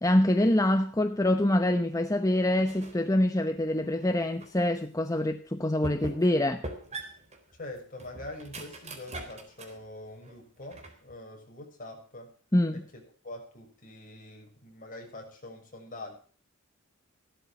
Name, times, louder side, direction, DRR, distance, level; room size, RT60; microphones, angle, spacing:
voice 1, 0.0-6.6 12.5-12.8, left 1 dB, 15° left, 0.9 m, -25 dB
sound 1, 2.6-3.1 3.5-4.6 5.1-5.2 5.8-6.4 6.6-9.8 10.2-11.1, right 2 dB, 35° right, 4.0 m, -42 dB
voice 2, 7.5-12.3 12.7-16.2, left 2 dB, 40° left, 6.3 m, -44 dB
16.5 x 12.5 x 4.9 m
head